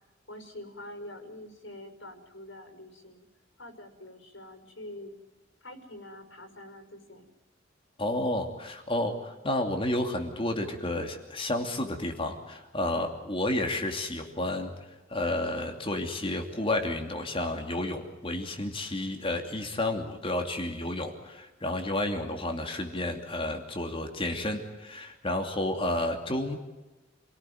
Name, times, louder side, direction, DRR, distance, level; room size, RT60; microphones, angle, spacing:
voice 1, 0.3-3.3 3.6-5.1 5.6-7.3, left 1 dB, 75° left, 6 dB, 5.4 m, -45 dB
voice 2, 8.0-14.7 15.1-26.6, left 1 dB, 30° left, 4 dB, 2.8 m, -31 dB
28.5 x 18.0 x 9.4 m, 1.1 s
head